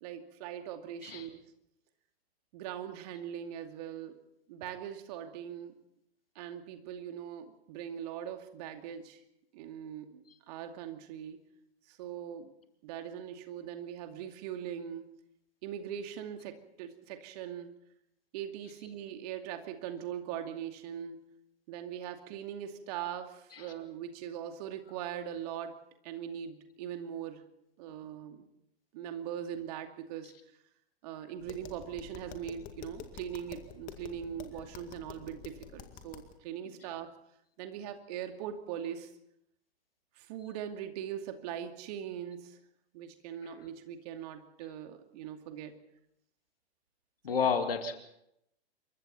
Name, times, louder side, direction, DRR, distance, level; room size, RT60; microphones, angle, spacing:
voice 1, 0.0-1.4 2.5-4.2 4.5-5.8 6.4-9.2 9.5-11.4 11.9-12.5 12.8-15.1 15.6-17.8 18.3-21.2 21.7-25.8 26.0-27.4 27.8-28.4 28.9-30.3 31.0-37.1 37.6-39.1 40.2-42.6 42.9-45.8 47.3-47.5, right 9 dB, 40° right, 6 dB, 2.5 m, -41 dB
Tap, 31.4-36.3, left 8 dB, 25° left, 2.2 m, -48 dB
voice 2, 47.2-47.9, left 6 dB, 60° left, 6 dB, 2.4 m, -31 dB
27.5 x 23.5 x 4.3 m, 0.79 s
figure-of-eight pair, 110°, 32 cm